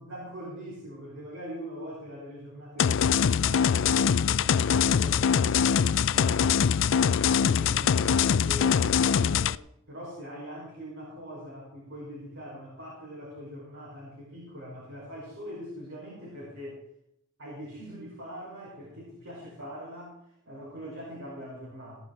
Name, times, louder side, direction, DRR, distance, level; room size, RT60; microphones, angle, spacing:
voice 1, 0.0-9.6 9.9-16.8 17.4-20.2 20.5-22.0, equal, 70° right, -5 dB, 5.5 m, -42 dB
sound 1, 2.8-9.6, left 7 dB, 65° left, 0.4 m, -23 dB
17.0 x 10.0 x 4.4 m, 0.76 s
head